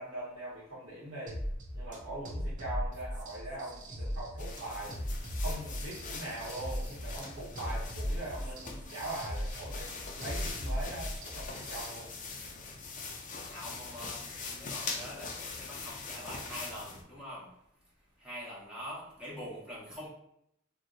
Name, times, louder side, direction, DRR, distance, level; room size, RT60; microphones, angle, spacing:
voice 1, 0.0-1.4 1.7-5.0 5.4-12.1, right 1 dB, 80° right, -8 dB, 0.9 m, -41 dB
sound 1, 1.3-11.9, equal, 40° right, 0.6 m, -38 dB
sound 2, 4.4-17.0, left 4 dB, 40° left, 0.4 m, -42 dB
voice 2, 13.4-17.5 18.2-20.1, equal, 5° right, -8 dB, 0.8 m, -44 dB
2.8 x 2.0 x 3.6 m, 0.75 s
head